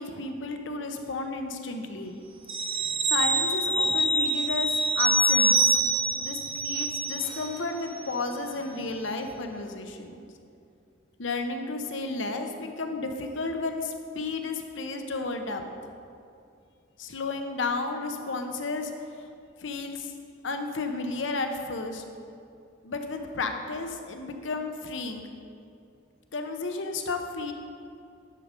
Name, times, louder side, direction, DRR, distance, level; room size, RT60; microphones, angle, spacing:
voice 1, 0.0-2.2 3.1-5.8 6.1-10.2 11.2-15.6 17.0-18.9 19.6-20.1 20.4-22.0 22.8-25.2 26.3-27.5, left 3 dB, 75° left, 5 dB, 0.9 m, -32 dB
sound 1, 2.5-7.6 7.9-8.1, right 1 dB, 30° right, 0.7 m, -25 dB
10.5 x 6.3 x 5.2 m, 2.5 s
head